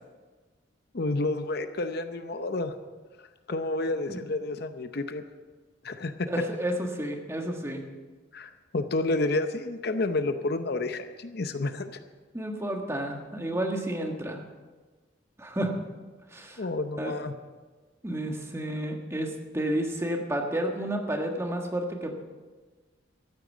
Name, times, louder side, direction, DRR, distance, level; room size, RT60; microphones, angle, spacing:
voice 1, 0.9-2.7 3.5-5.2 5.8-6.3 8.3-12.0 16.6-17.3, left 2 dB, 55° left, 9 dB, 0.7 m, -30 dB
voice 2, 6.3-7.8 12.3-14.4 15.4-15.7 16.3-16.7 17.0-17.2 18.0-22.2, right 1 dB, 15° right, 2 dB, 1.5 m, -31 dB
14.0 x 9.1 x 7.3 m, 1.3 s
head